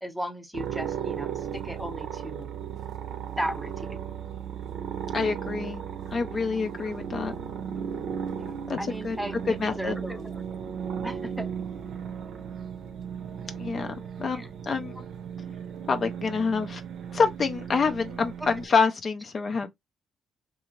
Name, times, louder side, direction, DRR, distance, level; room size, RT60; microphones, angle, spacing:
voice 1, 0.0-2.5 3.4-4.0 6.8-6.9 8.4-10.6 11.0-11.5 14.3-14.5 15.5-15.6 18.1-18.5, equal, ahead, 0.7 m, -36 dB
sound 1, 0.5-18.7, right 8 dB, 75° right, 0.6 m, -36 dB
voice 2, 5.1-5.8 6.1-7.3 8.7-8.8 9.0-9.2 9.5-10.0 13.5-14.9 15.9-16.8 17.1-19.7, left 5 dB, 45° left, 0.5 m, -27 dB
2.7 x 2.5 x 3.0 m
cardioid pair, 90°, 0 cm